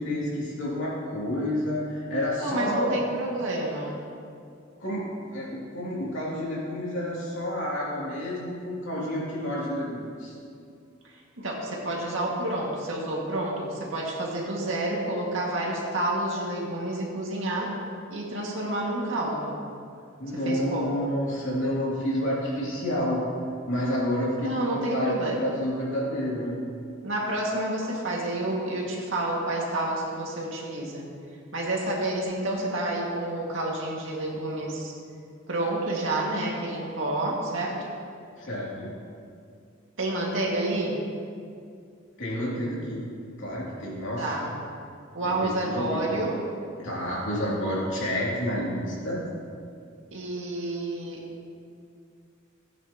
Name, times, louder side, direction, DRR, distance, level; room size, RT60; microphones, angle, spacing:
voice 1, 0.0-3.0 4.8-10.3 20.2-23.2 23.7-26.5 38.4-38.9 42.2-43.0 43.4-44.3 45.2-46.1 46.8-49.2, left 1 dB, 65° left, -6 dB, 2.9 m, -29 dB
voice 2, 2.4-4.0 11.4-17.7 18.1-19.6 20.4-21.1 24.4-25.5 27.0-31.1 31.5-34.9 35.5-37.9 40.0-41.0 44.2-44.5 45.1-46.4 50.1-51.2, right 1 dB, 70° right, -3 dB, 2.1 m, -29 dB
16.0 x 9.1 x 3.0 m, 2.4 s
head